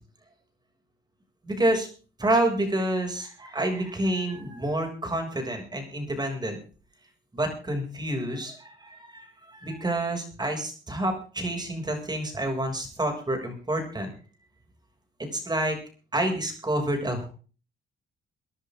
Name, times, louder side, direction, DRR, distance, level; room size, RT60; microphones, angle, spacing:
voice 1, 1.4-1.9 2.2-6.6 7.3-14.1 15.3-15.8 16.1-17.3, right 1 dB, 20° right, 3 dB, 6.7 m, -28 dB
23.5 x 11.0 x 3.8 m, 0.38 s
cardioid pair, 90°, 20 cm